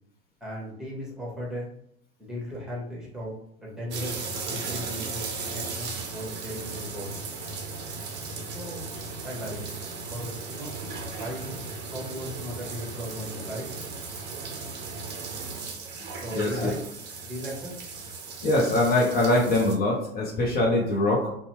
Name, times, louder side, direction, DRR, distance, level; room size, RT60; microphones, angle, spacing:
voice 1, 0.4-1.7 2.2-3.3 3.6-7.1 8.5-8.8 9.2-9.7 10.1-10.8 11.2-11.6 11.9-13.7 16.2-16.8 17.2-17.7, equal, ahead, -4 dB, 1.1 m, -36 dB
sound 1, 3.9-19.8, right 4 dB, 30° right, 0.7 m, -36 dB
voice 2, 16.3-16.7 18.4-21.3, left 1 dB, 30° left, -2 dB, 0.7 m, -23 dB
2.7 x 2.2 x 3.0 m, 0.70 s
figure-of-eight pair, 85°, 33 cm